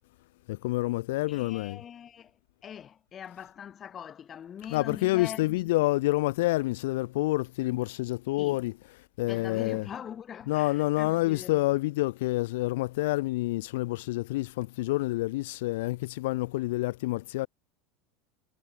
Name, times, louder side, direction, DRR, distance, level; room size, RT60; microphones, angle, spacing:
voice 1, 0.5-1.8 4.7-8.7 9.2-9.9 10.5-17.5, left 19 dB, 85° left, 0.5 m, -28 dB
voice 2, 1.3-2.3 2.6-5.7 8.4-8.6 9.3-11.6, left 9 dB, 25° left, 2.3 m, -42 dB
cardioid pair, 165°, 0 cm